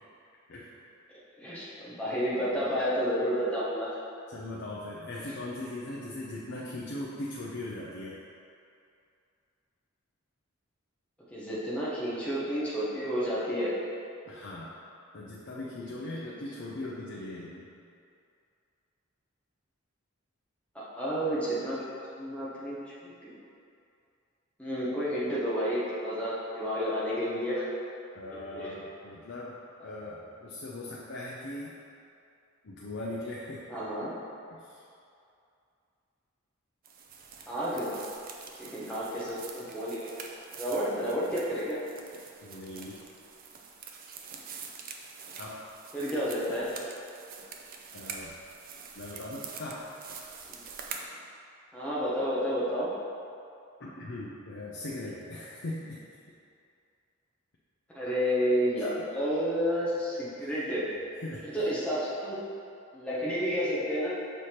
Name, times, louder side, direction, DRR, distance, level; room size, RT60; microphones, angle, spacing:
voice 1, 1.4-3.9 11.3-13.7 16.2-16.3 16.7-16.9 20.7-21.8 22.1-22.8 23.0-23.4 24.6-27.7 28.5-28.7 33.7-34.1 37.5-37.9 38.6-40.1 40.5-41.8 45.9-46.7 50.5-50.6 51.7-52.9 57.9-60.9 61.5-62.4 62.9-64.2, equal, 5° left, -9 dB, 1.0 m, -30 dB
voice 2, 4.3-8.2 14.3-14.7 15.1-17.7 28.1-29.6 29.8-31.7 32.6-33.8 34.5-34.8 42.4-43.0 45.4-45.6 47.9-48.3 49.0-49.8 53.8-56.0 58.8-59.1 60.4-60.6 60.9-61.7, left 1 dB, 60° left, -5 dB, 0.6 m, -40 dB
sound 1, 36.8-51.1, right 5 dB, 45° right, 0.5 m, -45 dB
6.3 x 3.4 x 4.3 m, 2.5 s
head